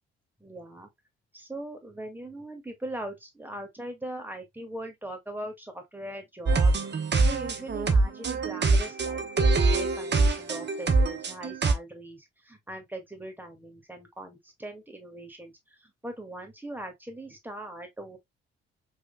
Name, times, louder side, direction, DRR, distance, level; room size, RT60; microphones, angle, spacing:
voice 1, 0.4-0.9 1.3-6.7 7.2-18.2, right 1 dB, 5° right, 2.0 m, -40 dB
sound 1, 6.5-11.7, right 3 dB, 35° right, 1.0 m, -24 dB
4.8 x 3.4 x 2.2 m
hypercardioid pair, 45°, 31 cm